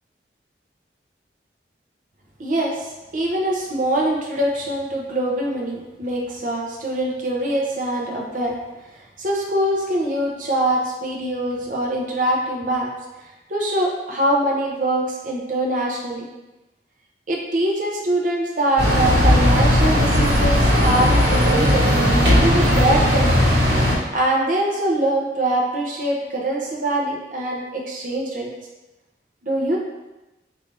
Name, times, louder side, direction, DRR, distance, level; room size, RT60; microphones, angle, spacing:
voice 1, 2.4-8.6 8.9-12.9 13.5-16.3 17.3-21.9 22.4-23.5 24.1-28.5 29.4-29.8, right 1 dB, 45° right, -1 dB, 0.7 m, -23 dB
sound 1, 18.8-24.0, left 1 dB, 75° right, 1.4 m, -17 dB
4.8 x 2.6 x 3.2 m, 1.0 s
head